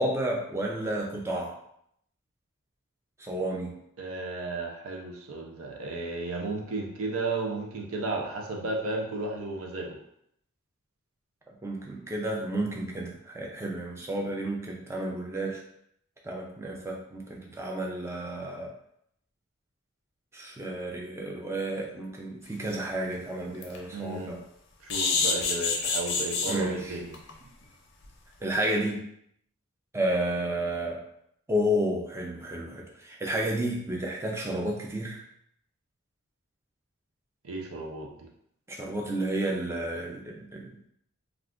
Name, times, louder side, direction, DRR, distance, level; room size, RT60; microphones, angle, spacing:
voice 1, 0.0-1.5 3.2-3.8 11.6-15.6 16.2-18.7 20.3-24.4 26.5-27.0 28.4-29.0 29.9-31.0 31.5-35.2 38.7-40.8, right 1 dB, 10° right, -1 dB, 0.4 m, -31 dB
voice 2, 4.0-10.0 23.9-24.4 24.8-27.2 37.4-38.1, right 2 dB, 70° right, 0 dB, 0.5 m, -33 dB
sound 1, 22.6-22.7 23.1-23.2 23.6-23.8 24.9-26.6 27.1-27.3 27.6-27.7 28.0-28.1, left 4 dB, 50° left, 0.5 m, -27 dB
2.4 x 2.4 x 3.5 m, 0.72 s
head